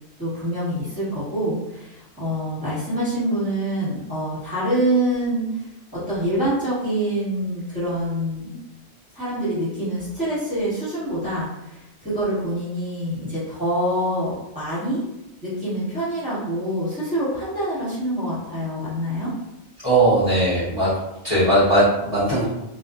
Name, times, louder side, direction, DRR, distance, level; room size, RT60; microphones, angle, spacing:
voice 1, 0.2-5.5 5.9-8.6 9.1-15.0 15.4-19.3, right 1 dB, 5° right, -12 dB, 1.3 m, -25 dB
voice 2, 19.8-20.9 21.2-22.5, right 1 dB, 35° left, -13 dB, 0.9 m, -18 dB
2.4 x 2.3 x 2.4 m, 0.91 s
omnidirectional pair, 1.1 m